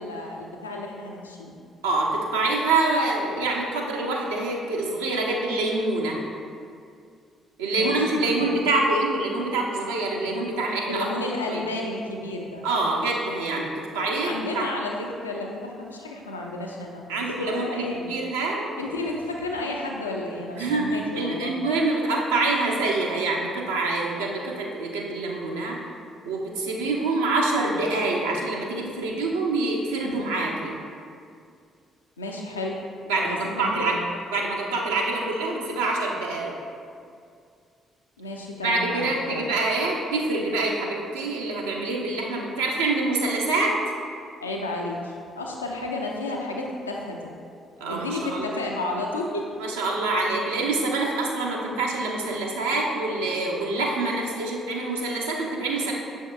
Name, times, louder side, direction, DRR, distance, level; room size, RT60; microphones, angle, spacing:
voice 1, 0.0-1.5 7.7-8.5 10.9-12.7 14.2-18.1 18.8-21.5 32.2-32.8 33.1-34.0 38.2-39.4 44.4-47.3 47.9-49.5, left 2 dB, 85° left, 0 dB, 0.3 m, -32 dB
voice 2, 1.8-6.2 7.6-11.1 11.5-11.6 12.6-14.6 17.1-18.6 20.6-25.8 26.3-30.8 33.1-34.0 34.3-36.5 38.6-43.7 47.8-48.5 49.6-55.9, right 2 dB, 75° right, -2 dB, 0.5 m, -26 dB
6.3 x 3.6 x 2.3 m, 2.3 s
figure-of-eight pair, 45°, 0 cm